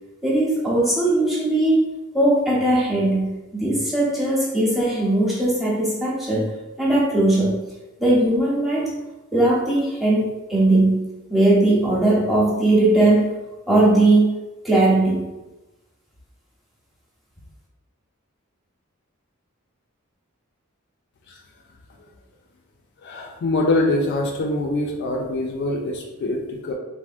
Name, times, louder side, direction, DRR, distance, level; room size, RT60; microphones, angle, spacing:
voice 1, 0.2-1.9 2.1-6.4 6.8-7.6 8.0-8.9 9.3-13.3 13.7-14.3 14.6-15.2, right 2 dB, ahead, -5 dB, 0.6 m, -19 dB
voice 2, 23.0-26.7, left 2 dB, 55° left, 1 dB, 0.3 m, -24 dB
3.3 x 2.0 x 2.4 m, 1.0 s
head